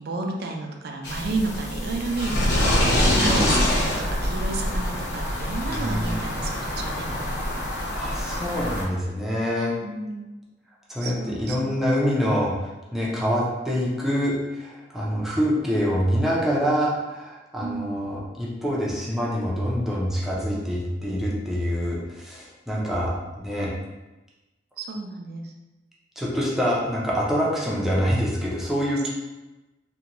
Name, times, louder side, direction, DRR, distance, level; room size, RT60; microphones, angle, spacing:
voice 1, 0.0-7.2 9.8-10.3 11.0-11.8 17.6-17.9 24.8-25.5, right 3 dB, 55° right, 2 dB, 0.4 m, -32 dB
sound 1, 1.0-8.8, left 1 dB, 60° left, 0.7 m, -25 dB
voice 2, 5.7-6.2 7.9-9.7 10.9-23.7 26.2-29.1, equal, ahead, -6 dB, 0.5 m, -25 dB
2.6 x 2.2 x 2.9 m, 1.1 s
head